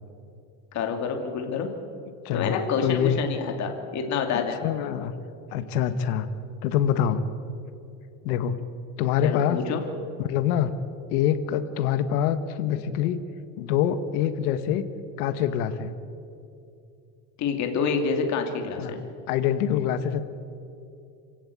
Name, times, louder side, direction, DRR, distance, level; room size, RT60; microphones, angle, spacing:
voice 1, 0.7-1.7 2.3-4.7 9.2-9.8 17.4-19.0, left 5 dB, 40° left, 4 dB, 2.7 m, -27 dB
voice 2, 2.2-3.2 4.6-5.1 5.5-6.3 6.6-7.2 8.2-8.5 9.0-9.6 10.2-10.7 11.1-13.2 13.6-14.8 15.2-15.9 18.8-18.9 19.3-20.2, left 9 dB, 80° left, 10 dB, 1.6 m, -25 dB
26.0 x 16.5 x 8.5 m, 2.7 s
cardioid pair, 155°, 44 cm